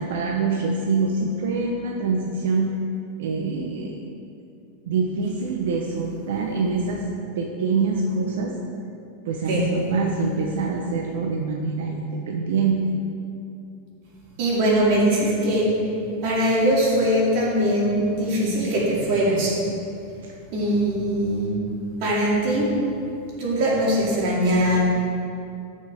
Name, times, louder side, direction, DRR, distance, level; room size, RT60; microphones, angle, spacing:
voice 1, 0.0-2.7 3.2-4.0 4.8-7.0 7.4-8.5 9.3-12.9 20.2-20.4, right 4 dB, 75° right, 1 dB, 0.8 m, -25 dB
voice 2, 14.4-15.7 16.2-19.5 20.5-21.5 22.0-22.7 23.4-24.8, equal, 40° right, -4 dB, 2.3 m, -21 dB
14.5 x 6.5 x 3.5 m, 2.6 s
supercardioid pair, 180°, 0 cm